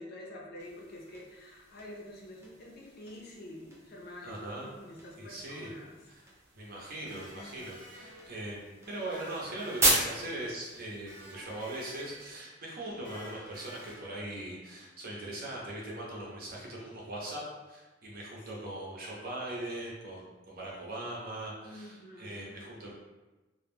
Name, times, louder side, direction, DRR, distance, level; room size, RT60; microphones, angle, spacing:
voice 1, 0.0-6.0 7.0-7.7 8.8-9.0 9.5-9.7 18.5-18.6 21.6-22.6, left 1 dB, 55° left, -2 dB, 0.5 m, -48 dB
sound 1, 0.6-12.4, right 1 dB, 15° right, 0.5 m, -37 dB
voice 2, 4.2-4.7 5.2-5.7 6.1-6.2 6.6-17.4 17.7-22.9, right 1 dB, 50° right, -3 dB, 0.7 m, -40 dB
Electric guitar, 7.1-14.8, right 1 dB, 80° right, 0.9 m, -52 dB
2.2 x 2.1 x 3.3 m, 1.1 s
head